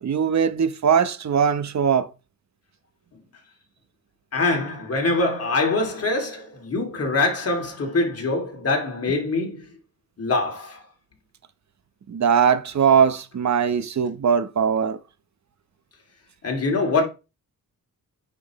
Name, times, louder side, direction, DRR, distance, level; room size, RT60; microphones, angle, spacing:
voice 1, 0.0-2.1 12.1-15.0, right 7 dB, 50° right, 1.0 m, -20 dB
voice 2, 4.3-9.7 10.2-10.8 16.4-17.0, left 3 dB, 45° left, 2.8 m, -24 dB
8.8 x 6.3 x 3.1 m
cardioid pair, 105°, 35 cm